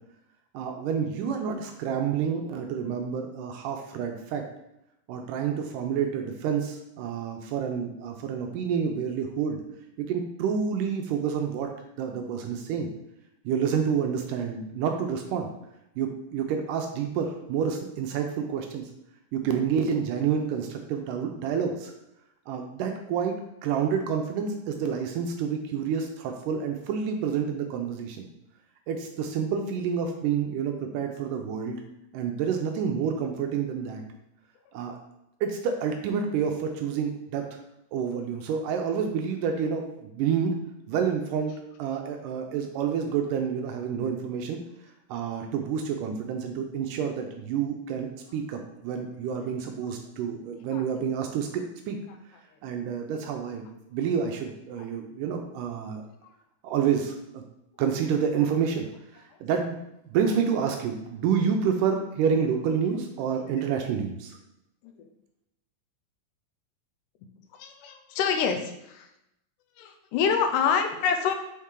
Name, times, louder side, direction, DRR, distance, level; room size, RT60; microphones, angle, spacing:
voice 1, 0.5-4.4 5.1-9.6 10.0-11.7 12.0-12.9 13.5-15.5 16.0-18.9 19.3-21.9 22.5-23.4 23.6-28.3 28.9-31.8 32.1-34.0 34.7-35.0 35.4-37.6 37.9-40.5 40.9-44.6 45.1-52.0 52.6-53.6 53.9-56.0 56.6-57.4 57.8-58.9 59.1-64.4, right 7 dB, 80° right, 4 dB, 2.0 m, -28 dB
voice 2, 67.5-69.1 69.8-71.3, left 6 dB, 75° left, 5 dB, 2.0 m, -27 dB
6.3 x 4.3 x 3.7 m, 0.83 s
omnidirectional pair, 4.2 m